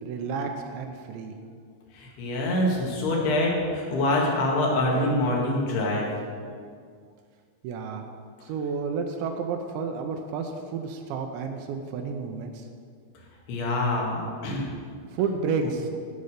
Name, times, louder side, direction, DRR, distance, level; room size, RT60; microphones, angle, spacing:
voice 1, 0.0-1.3 7.6-8.0 8.5-12.5 15.1-15.9, right 5 dB, 80° right, 4 dB, 3.0 m, -31 dB
voice 2, 1.9-6.1 13.5-14.7, left 1 dB, 65° left, -2 dB, 3.8 m, -25 dB
15.5 x 5.5 x 6.6 m, 2.1 s
omnidirectional pair, 5.3 m